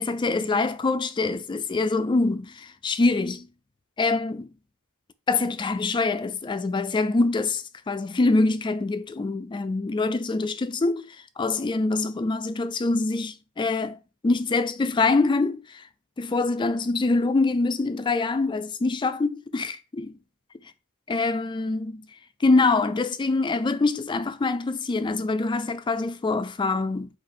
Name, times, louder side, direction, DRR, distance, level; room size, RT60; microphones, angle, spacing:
voice 1, 0.0-3.5 4.0-4.5 5.3-11.1 11.4-15.8 16.2-20.1 21.1-22.1 22.4-27.1, left 3 dB, 20° left, 0.3 m, -25 dB
5.3 x 2.5 x 3.8 m
head